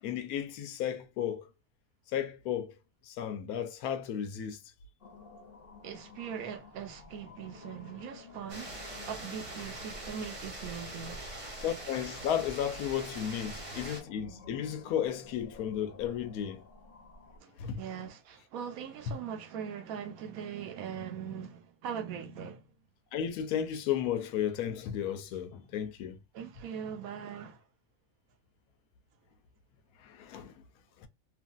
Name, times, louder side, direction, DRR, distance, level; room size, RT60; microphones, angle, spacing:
voice 1, 0.0-1.5 2.1-2.7 3.0-4.6 11.6-16.6 17.6-17.8 19.1-19.2 23.1-26.2 30.0-30.5 31.0-31.1, left 9 dB, 80° left, 1.1 m, -34 dB
sound 1, 5.0-17.4, left 3 dB, 45° left, 0.9 m, -53 dB
voice 2, 5.8-8.8 9.1-11.2 17.4-22.7 26.3-27.6, right 8 dB, 70° right, 1.1 m, -41 dB
sound 2, 8.5-14.0, right 2 dB, 35° right, 1.0 m, -43 dB
3.1 x 2.5 x 2.3 m
omnidirectional pair, 1.6 m